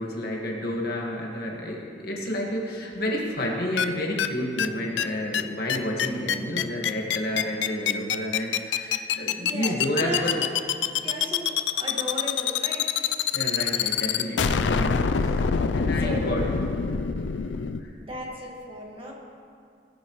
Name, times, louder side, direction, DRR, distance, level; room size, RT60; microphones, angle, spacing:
voice 1, 0.0-10.4 13.3-16.4 17.8-17.9, left 1 dB, 55° left, -1 dB, 1.7 m, -30 dB
sound 1, 3.8-3.9 4.2-4.3 4.6-4.7 5.0-5.1 5.3-5.4 5.7-17.8, left 7 dB, 70° left, 0.4 m, -24 dB
voice 2, 9.4-10.5 11.0-13.1 16.0-16.5 18.0-19.1, equal, 30° right, -2 dB, 1.7 m, -35 dB
19.0 x 10.0 x 3.1 m, 2.4 s
head